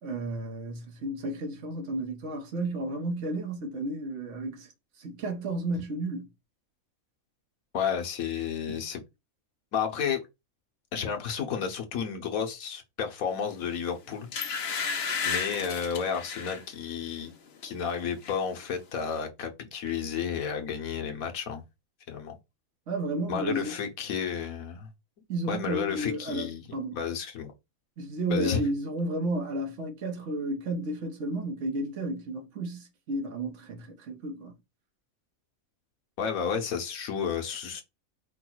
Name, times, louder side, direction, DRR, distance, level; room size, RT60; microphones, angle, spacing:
voice 1, 0.0-4.7 5.0-6.3 22.9-23.7 25.3-27.0 28.0-34.5, right 2 dB, 60° right, 1.4 m, -32 dB
voice 2, 7.7-9.0 9.7-10.2 10.9-14.3 15.3-17.3 17.6-21.6 22.1-22.4 23.3-24.9 25.5-26.6 26.9-27.5 28.3-28.6 36.2-37.8, left 7 dB, 85° left, 1.4 m, -32 dB
sound 1, 13.6-13.8 14.3-16.6 17.1-17.3 17.6-18.4 18.6-18.7, left 6 dB, 55° left, 0.9 m, -33 dB
4.9 x 2.3 x 4.5 m
omnidirectional pair, 1.5 m